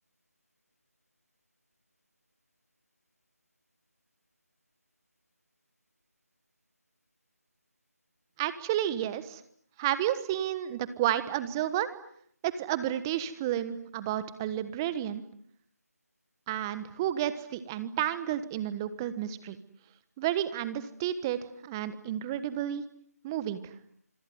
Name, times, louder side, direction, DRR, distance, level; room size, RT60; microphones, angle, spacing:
voice 1, 8.4-9.4 9.8-11.9 12.4-15.2 16.5-19.6 20.2-22.8 23.2-23.7, right 11 dB, 15° right, 14 dB, 1.3 m, -31 dB
26.5 x 23.5 x 9.5 m, 0.66 s
figure-of-eight pair, 165°, 9 cm